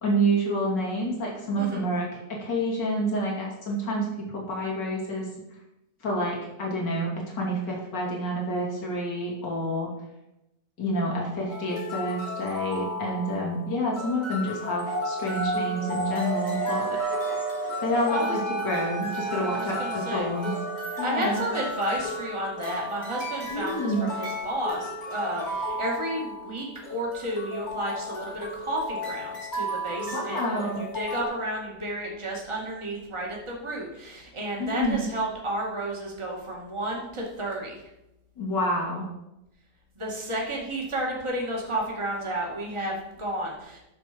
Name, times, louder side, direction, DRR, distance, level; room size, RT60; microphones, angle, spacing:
voice 1, 0.0-5.3 6.0-9.9 10.8-16.8 17.8-20.5 21.0-21.4 23.5-24.1 30.1-30.8 34.6-35.0 38.4-39.1, equal, 85° left, -3 dB, 3.3 m, -28 dB
sound 1, 11.5-31.2, left 1 dB, 25° left, 1.5 m, -35 dB
sound 2, 14.9-22.4, right 3 dB, 90° right, 3.0 m, -32 dB
voice 2, 19.4-20.3 21.0-30.7 30.9-37.8 40.0-43.8, right 1 dB, 15° right, -2 dB, 2.0 m, -32 dB
9.7 x 6.8 x 5.2 m, 0.91 s
omnidirectional pair, 1.8 m